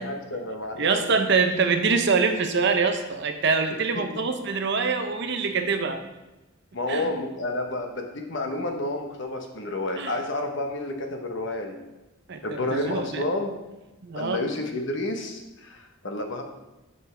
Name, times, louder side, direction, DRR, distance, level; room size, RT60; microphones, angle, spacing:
voice 1, 0.0-0.9 6.7-11.8 12.4-13.6 14.1-16.4, left 2 dB, 60° left, 3 dB, 1.1 m, -30 dB
voice 2, 0.8-6.0 6.9-7.1 10.0-10.2 12.3-13.2 14.0-14.4, right 4 dB, 55° right, 6 dB, 0.7 m, -24 dB
11.0 x 5.3 x 3.4 m, 1.0 s
head